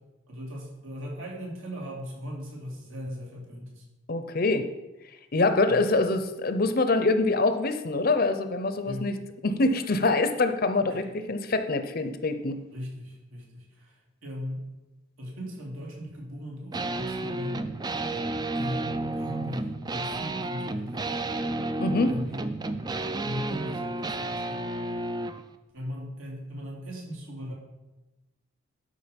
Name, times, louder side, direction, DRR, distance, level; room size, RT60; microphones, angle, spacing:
voice 1, 0.3-3.8 5.7-5.8 8.8-9.1 10.9-11.1 12.7-14.7 15.2-17.7 18.5-21.1 22.1-22.5 23.2-24.9 25.7-27.5, equal, 75° right, -2 dB, 2.8 m, -38 dB
voice 2, 4.1-4.7 5.3-9.2 9.4-12.6 21.8-22.1, left 2 dB, 45° left, 9 dB, 0.7 m, -25 dB
sound 1, 16.7-25.4, right 2 dB, 20° right, 0.4 m, -31 dB
12.0 x 5.2 x 5.2 m, 1.0 s
head